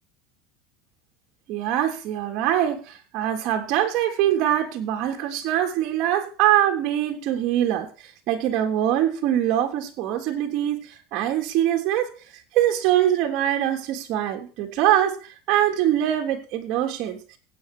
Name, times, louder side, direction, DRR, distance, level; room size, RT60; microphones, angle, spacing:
voice 1, 1.5-12.1 12.5-17.2, right 11 dB, 50° right, 3 dB, 3.4 m, -23 dB
15.5 x 9.2 x 4.5 m, 0.37 s
supercardioid pair, 155°, 0 cm